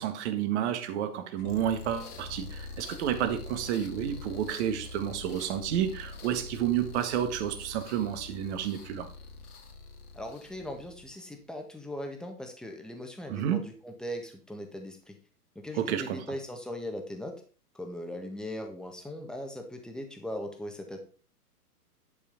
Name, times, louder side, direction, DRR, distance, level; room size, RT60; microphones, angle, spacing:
voice 1, 0.0-9.1 13.3-13.6 15.8-16.2, right 10 dB, 45° right, 8 dB, 1.8 m, -30 dB
sound 1, 1.4-11.4, left 3 dB, 70° left, 2.4 m, -44 dB
voice 2, 10.1-15.2 15.5-17.4 17.7-21.0, left 1 dB, ahead, 4 dB, 1.5 m, -39 dB
11.0 x 5.2 x 5.2 m, 0.40 s
hypercardioid pair, 120°, 47 cm